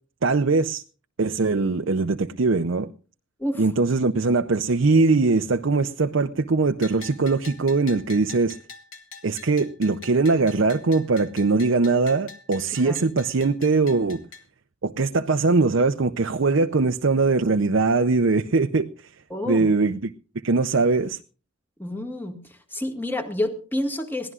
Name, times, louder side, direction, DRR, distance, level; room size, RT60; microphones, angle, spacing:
voice 1, 0.2-0.8 1.2-2.9 3.6-8.6 9.2-14.2 14.8-18.9 19.5-20.1 20.4-21.2, right 3 dB, 60° right, 8 dB, 0.6 m, -21 dB
Bell, 6.8-14.4, left 4 dB, 80° left, 2.5 m, -44 dB
voice 2, 19.3-19.7 21.8-22.4 22.7-24.3, left 1 dB, 10° left, 5 dB, 1.9 m, -28 dB
22.0 x 16.5 x 2.4 m, 0.38 s
head